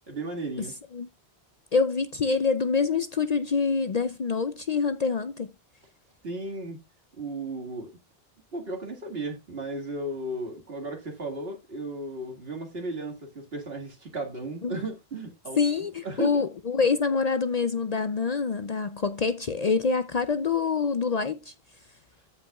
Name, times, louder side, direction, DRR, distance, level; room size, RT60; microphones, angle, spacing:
voice 1, 0.1-0.8 6.2-6.8 7.2-7.9 8.5-15.6 16.0-16.4, right 2 dB, 65° right, 2.2 m, -35 dB
voice 2, 1.7-5.5 14.6-14.8 15.6-21.5, left 5 dB, 50° left, 0.6 m, -26 dB
15.0 x 5.4 x 2.3 m
omnidirectional pair, 1.1 m